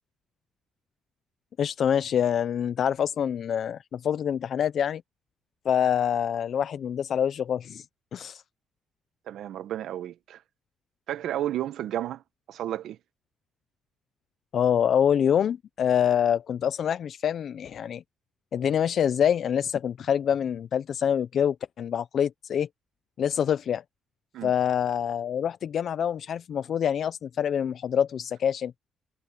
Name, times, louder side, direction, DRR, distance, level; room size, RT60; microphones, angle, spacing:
voice 1, 1.6-5.0 5.6-7.8 8.1-8.4 14.5-18.0 18.5-22.7 23.2-23.8 24.4-28.7, left 8 dB, 60° left, 0.6 m, -26 dB
voice 2, 9.3-10.4 11.1-12.2 12.5-13.0 24.3-24.5, right 12 dB, 75° right, 1.0 m, -32 dB
cardioid pair, 90°, 0 cm